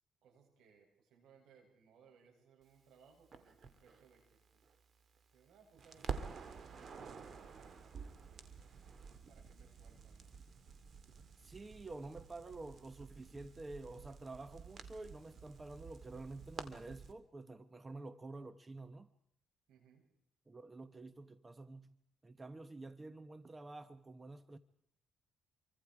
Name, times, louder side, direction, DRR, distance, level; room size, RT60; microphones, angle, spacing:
voice 1, 0.2-4.7 5.3-8.8 9.3-10.3 19.7-20.0, right 6 dB, 80° right, 8.0 m, -66 dB
Crackle, 3.3-5.5 5.8-17.1, right 5 dB, 50° right, 2.5 m, -50 dB
voice 2, 11.4-19.1 20.5-22.0 22.2-24.6, right 2 dB, 25° right, 1.1 m, -49 dB
27.5 x 24.5 x 4.9 m
cardioid pair, 90°, 0 cm